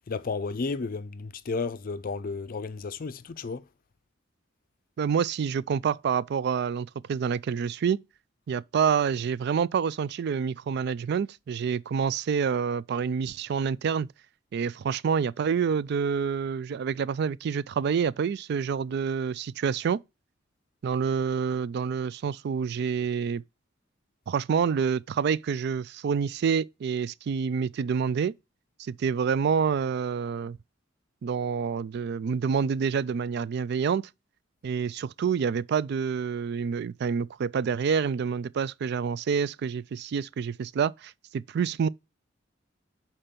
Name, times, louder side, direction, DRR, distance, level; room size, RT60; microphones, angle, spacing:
voice 1, 0.1-3.6, left 4 dB, 50° left, 0.5 m, -32 dB
voice 2, 5.0-8.0 8.5-14.1 14.5-20.0 20.8-23.4 24.3-28.3 28.8-30.6 31.2-34.1 34.6-41.9, right 6 dB, 60° right, 0.3 m, -27 dB
5.9 x 4.4 x 5.1 m
head